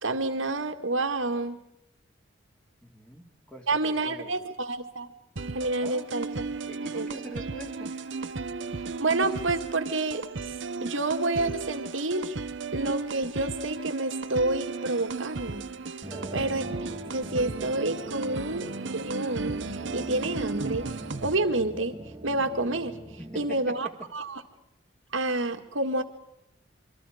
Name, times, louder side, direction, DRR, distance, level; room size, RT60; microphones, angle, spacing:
voice 1, 0.0-1.6 3.7-5.1 5.5-6.4 6.9-7.1 9.0-10.5 10.8-12.4 12.7-15.7 16.3-16.6 17.1-19.6 19.9-20.9 21.2-22.0 22.2-23.0 23.4-24.4 25.1-26.0, right 2 dB, 85° right, 8 dB, 1.9 m, -29 dB
voice 2, 2.8-4.4 5.8-6.1 6.7-8.0 16.1-16.5 23.2-23.9, equal, 5° left, 2 dB, 2.6 m, -43 dB
sound 1, 5.4-21.4, right 3 dB, 65° right, 1.0 m, -35 dB
sound 2, 16.0-23.6, right 1 dB, 25° right, 2.4 m, -42 dB
27.0 x 24.0 x 5.1 m, 0.79 s
head